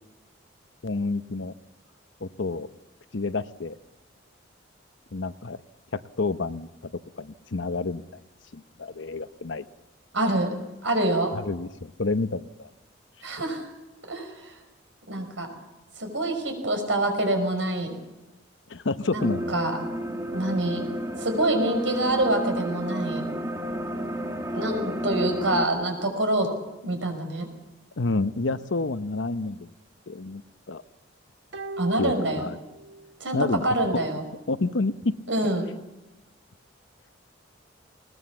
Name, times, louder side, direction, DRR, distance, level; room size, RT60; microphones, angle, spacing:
voice 1, 0.8-1.5 2.2-2.7 3.1-3.8 5.1-5.6 5.9-6.9 7.2-8.0 8.5-9.7 11.3-12.7 18.7-19.5 28.0-29.7 30.1-30.4 30.7-30.8 32.0-32.6 33.3-33.7 34.5-35.1, left 3 dB, 80° left, 12 dB, 0.8 m, -29 dB
voice 2, 10.1-10.5 10.8-11.3 13.2-13.6 14.1-14.6 15.1-15.5 16.0-17.9 19.1-19.8 20.3-20.9 21.2-23.3 24.5-26.5 26.8-27.5 31.8-32.5 33.2-34.2 35.3-35.7, right 1 dB, 90° right, 5 dB, 5.4 m, -26 dB
sound 1, 19.2-25.6, equal, 15° right, 1.6 m, -31 dB
sound 2, 31.5-33.2 33.5-33.6, right 2 dB, 70° right, 1.2 m, -39 dB
21.0 x 19.5 x 7.2 m, 1.0 s
head